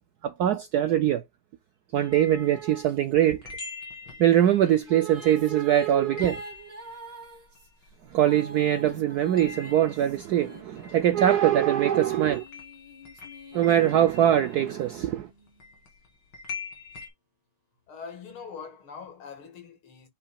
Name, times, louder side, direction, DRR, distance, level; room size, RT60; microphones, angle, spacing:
voice 1, 0.2-1.2 1.9-3.4 4.2-6.4 8.1-12.4 13.5-15.3, right 11 dB, 80° right, 0.8 m, -22 dB
sound 1, 2.0-8.6 8.8-17.1, left 4 dB, 70° left, 3.4 m, -45 dB
sound 2, 4.3-11.3 11.9-15.7, right 1 dB, 20° right, 2.0 m, -47 dB
voice 2, 17.9-20.1, left 6 dB, 90° left, 2.6 m, -42 dB
8.8 x 5.6 x 2.3 m
omnidirectional pair, 2.3 m